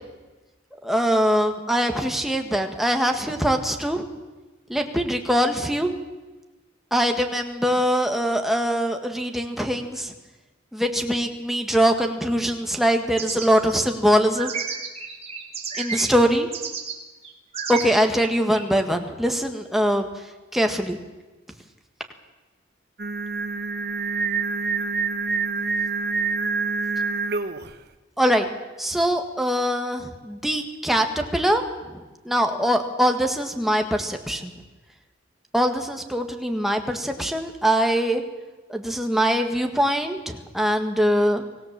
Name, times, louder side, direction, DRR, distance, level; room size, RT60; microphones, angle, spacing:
voice 1, 0.8-4.0 4.7-5.9 6.9-10.1 10.7-14.5 15.8-16.5 17.7-20.1 20.5-21.0 28.2-28.5 28.8-31.6 31.9-34.5 35.5-38.2 38.7-41.4, equal, ahead, 4 dB, 1.8 m, -22 dB
sound 1, 13.2-16.2 16.5-17.0 17.2-18.6, right 6 dB, 30° right, 3.0 m, -32 dB
Singing, 23.0-27.7, right 4 dB, 55° right, 1.2 m, -26 dB
25.0 x 16.5 x 7.6 m, 1.2 s
head